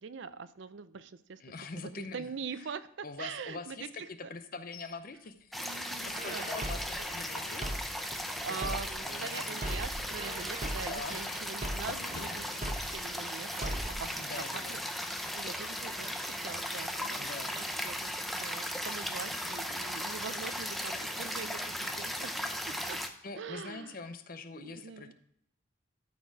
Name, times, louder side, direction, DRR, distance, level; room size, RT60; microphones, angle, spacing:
voice 1, 0.0-1.4 2.0-3.9 5.6-6.6 7.0-7.1 8.1-14.3 14.5-14.8 15.3-17.3 17.5-23.0 23.4-23.9 24.6-25.1, right 5 dB, 60° right, 14 dB, 0.5 m, -43 dB
voice 2, 1.4-2.8 3.0-5.5 6.0-7.7 8.3-8.7 9.0-9.8 10.9-11.4 11.9-12.4 14.0-14.8 17.2-17.6 19.3-19.4 23.2-25.1, left 3 dB, 45° left, 10 dB, 0.6 m, -44 dB
sound 1, 4.7-5.0 5.4-5.5 6.0-6.8 7.3-8.3 8.9-9.7 10.1-10.3 10.9-13.3 13.7-13.9, left 3 dB, 90° left, 0.7 m, -51 dB
sound 2, 5.5-23.1, equal, ahead, 0.5 m, -37 dB
sound 3, 6.1-9.1 9.5-13.1 13.5-14.1, right 1 dB, 35° right, 1.0 m, -39 dB
12.5 x 4.4 x 4.7 m, 0.74 s
head